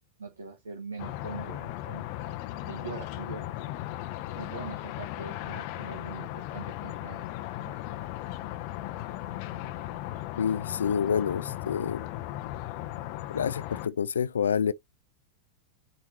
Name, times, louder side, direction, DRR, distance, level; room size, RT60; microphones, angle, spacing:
voice 1, 0.2-2.1 2.7-3.7 4.3-7.8, right 4 dB, 70° right, 1.4 m, -42 dB
sound 1, 1.0-13.9, left 15 dB, 45° left, 0.8 m, -37 dB
voice 2, 10.4-12.1 13.3-14.7, left 7 dB, 70° left, 0.5 m, -28 dB
9.5 x 4.4 x 2.9 m
figure-of-eight pair, 90°, 0 cm